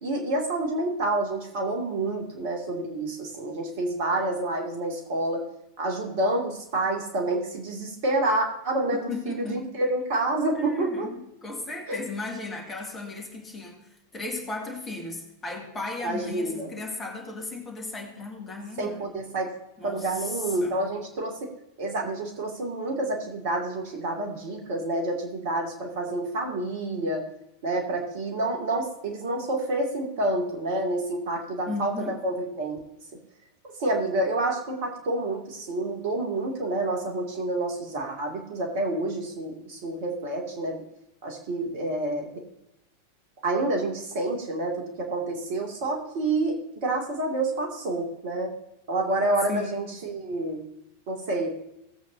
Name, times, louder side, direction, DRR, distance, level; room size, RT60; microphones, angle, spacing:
voice 1, 0.0-5.4 5.8-11.1 11.9-12.0 16.0-16.7 18.8-19.5 19.8-21.5 21.8-27.2 27.6-32.8 33.6-40.8 41.2-42.4 43.4-48.5 48.9-50.6 51.1-51.5, right 2 dB, 50° right, 0 dB, 2.4 m, -28 dB
voice 2, 9.1-9.8 10.5-19.0 19.8-20.8 31.7-32.2 49.5-50.0, left 3 dB, 20° left, 0 dB, 2.3 m, -36 dB
17.5 x 7.9 x 2.7 m, 0.84 s
figure-of-eight pair, 90°, 0 cm